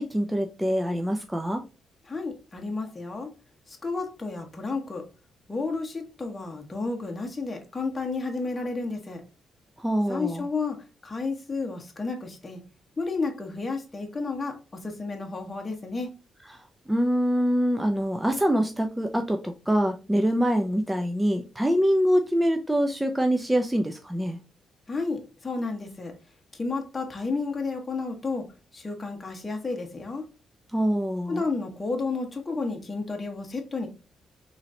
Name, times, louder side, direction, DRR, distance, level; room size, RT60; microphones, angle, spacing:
voice 1, 0.0-1.6 9.8-10.5 16.9-24.4 30.7-31.4, equal, 5° right, 5 dB, 0.4 m, -24 dB
voice 2, 2.1-3.3 3.7-5.0 5.5-9.2 10.1-10.8 11.0-12.6 13.0-14.6 14.8-16.1 24.9-26.1 26.5-28.5 28.7-30.2 31.3-33.9, left 3 dB, 20° left, 2 dB, 0.9 m, -31 dB
4.0 x 3.1 x 2.6 m, 0.31 s
cardioid pair, 125°, 0 cm